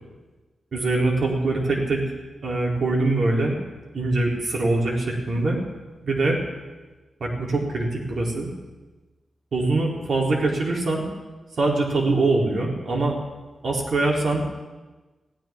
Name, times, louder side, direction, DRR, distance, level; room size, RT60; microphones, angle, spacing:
voice 1, 0.7-2.0 2.4-3.6 3.9-5.6 6.0-6.4 7.2-8.5 9.5-11.1 11.6-13.2 13.6-14.5, right 2 dB, 50° right, -1 dB, 3.0 m, -23 dB
20.5 x 15.5 x 3.5 m, 1.2 s
wide cardioid pair, 175°, 0 cm